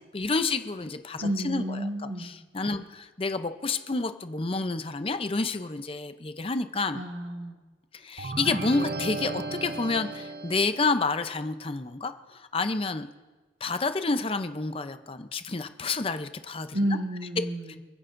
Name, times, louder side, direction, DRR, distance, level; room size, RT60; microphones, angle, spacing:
voice 1, 0.0-7.0 7.9-13.1 13.6-17.0 17.7-17.8, left 3 dB, 30° left, 9 dB, 0.6 m, -29 dB
voice 2, 1.2-2.3 2.7-2.8 7.0-7.6 16.7-17.8, right 1 dB, 85° right, 1 dB, 1.9 m, -31 dB
sound 1, 8.2-11.0, right 3 dB, 50° right, 0.6 m, -35 dB
30.0 x 10.0 x 2.6 m, 1.3 s
head